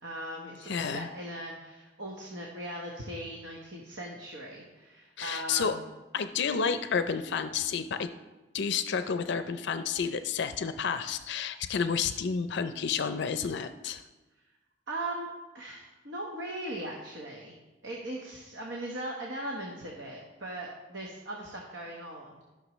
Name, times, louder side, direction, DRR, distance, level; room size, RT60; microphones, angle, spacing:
voice 1, 0.0-5.8 14.9-17.5 17.8-22.4, right 1 dB, 75° right, -1 dB, 1.2 m, -39 dB
voice 2, 0.7-1.1 5.2-5.7 6.1-8.1 8.5-14.0, left 6 dB, 65° left, 10 dB, 0.5 m, -30 dB
14.0 x 6.4 x 3.1 m, 1.1 s
head